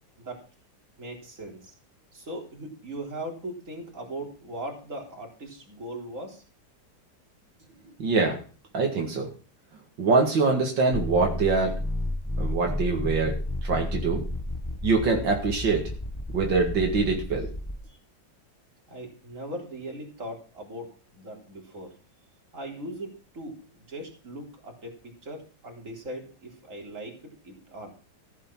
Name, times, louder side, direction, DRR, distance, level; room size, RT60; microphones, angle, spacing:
voice 1, 1.0-1.7 2.1-6.4 18.9-21.9 22.5-23.6 23.9-27.2 27.4-27.9, right 1 dB, 40° right, 1 dB, 3.9 m, -39 dB
voice 2, 8.0-8.4 8.7-9.3 10.0-11.7 12.4-13.3 13.6-14.2 14.8-15.8 16.3-17.5, right 4 dB, 80° right, 2 dB, 2.8 m, -24 dB
sound 1, 10.9-17.8, left 1 dB, 10° left, 1.2 m, -32 dB
15.0 x 8.3 x 6.0 m, 0.38 s
omnidirectional pair, 2.0 m